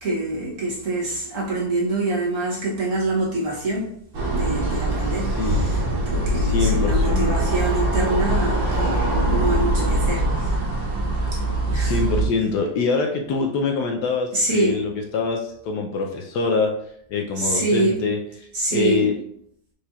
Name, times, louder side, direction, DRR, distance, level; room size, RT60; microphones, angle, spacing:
voice 1, 0.0-3.9 4.3-9.0 9.3-10.6 11.3-11.4 11.7-12.0 14.3-14.8 17.4-18.0 18.5-19.1, right 2 dB, 55° right, -4 dB, 1.1 m, -25 dB
sound 1, 4.1-12.2, right 1 dB, 90° right, 1.7 m, -22 dB
voice 2, 5.2-5.7 6.3-7.6 11.7-16.7 17.1-18.2 18.7-19.1, left 4 dB, 70° left, 2 dB, 1.1 m, -24 dB
4.9 x 4.1 x 2.3 m, 0.69 s
omnidirectional pair, 2.0 m